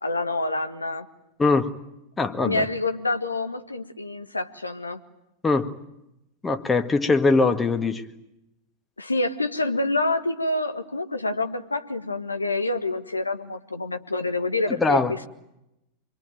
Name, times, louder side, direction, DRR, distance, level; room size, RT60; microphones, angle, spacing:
voice 1, 0.0-1.1 2.4-5.0 9.0-15.3, left 2 dB, 80° left, 7 dB, 1.7 m, -27 dB
voice 2, 1.4-1.7 2.2-2.7 5.4-5.7 6.4-8.1 14.7-15.1, left 3 dB, 15° left, 8 dB, 1.8 m, -22 dB
26.5 x 22.5 x 9.2 m, 0.87 s
figure-of-eight pair, 90°, 0 cm